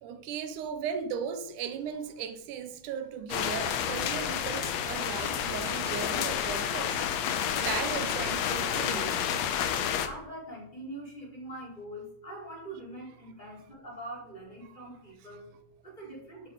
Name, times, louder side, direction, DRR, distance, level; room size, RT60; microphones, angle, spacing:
voice 1, 0.0-9.3 15.3-15.4, right 7 dB, 85° right, 2.3 m, -37 dB
sound 1, 3.3-10.1, left 9 dB, 70° left, 1.9 m, -30 dB
voice 2, 10.1-15.4 16.0-16.4, right 1 dB, 15° left, 4.4 m, -43 dB
11.5 x 8.6 x 5.0 m
omnidirectional pair, 3.5 m